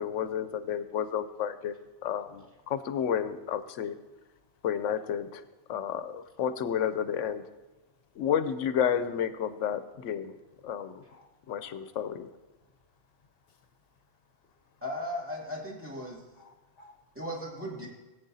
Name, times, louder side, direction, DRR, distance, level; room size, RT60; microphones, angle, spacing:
voice 1, 0.0-4.0 4.6-5.4 5.7-7.4 8.2-10.3 10.6-11.0 11.5-12.3, left 8 dB, 85° left, 12 dB, 1.0 m, -31 dB
voice 2, 11.1-12.1 12.6-12.7 13.4-13.7 14.4-14.8 16.3-17.2, left 2 dB, 55° left, 7 dB, 1.0 m, -60 dB
voice 3, 14.8-16.3 17.1-17.9, equal, 10° right, -3 dB, 2.4 m, -36 dB
18.0 x 8.6 x 2.7 m, 1.2 s
omnidirectional pair, 1.3 m